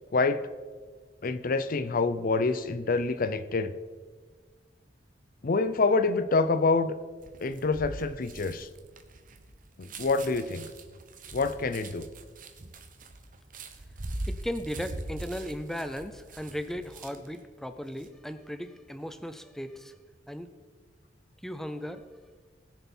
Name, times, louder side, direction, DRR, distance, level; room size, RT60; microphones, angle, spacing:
voice 1, 0.1-0.4 1.2-3.7 5.4-7.0 7.4-8.7 9.8-10.7 11.3-12.1, left 3 dB, 50° left, 12 dB, 0.6 m, -26 dB
sound 1, 7.2-17.4 17.8-18.1, right 2 dB, 50° right, 1.1 m, -42 dB
voice 2, 14.3-19.9 20.3-20.5 21.4-22.0, equal, ahead, 9 dB, 0.5 m, -36 dB
20.0 x 6.9 x 4.4 m, 1.5 s
head